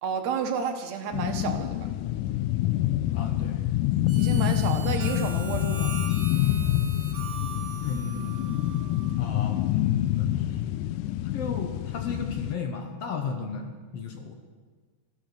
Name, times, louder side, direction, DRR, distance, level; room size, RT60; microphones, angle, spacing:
voice 1, 0.0-1.9 4.1-5.9, right 6 dB, 70° right, 5 dB, 2.3 m, -31 dB
sound 1, 1.1-12.6, left 13 dB, 85° left, 2.1 m, -27 dB
voice 2, 3.1-3.6 7.8-8.6 9.2-10.6 11.3-14.4, left 5 dB, 60° left, 5 dB, 1.9 m, -35 dB
Harmonica, 4.1-9.2, right 5 dB, 35° right, 1.7 m, -41 dB
14.0 x 13.0 x 6.8 m, 1.5 s
omnidirectional pair, 3.6 m